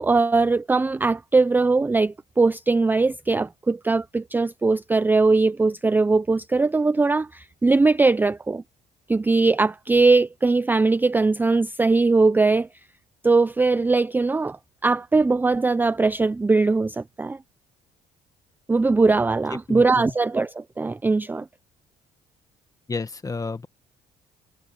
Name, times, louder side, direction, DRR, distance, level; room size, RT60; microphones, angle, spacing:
voice 1, 0.0-8.6 9.1-12.7 13.2-14.6 14.8-17.4 18.7-21.4, right 3 dB, 10° right, 0.4 m, -20 dB
voice 2, 19.7-20.1 22.9-23.7, left 4 dB, 20° left, 1.7 m, -31 dB
cardioid pair, 110°, 17 cm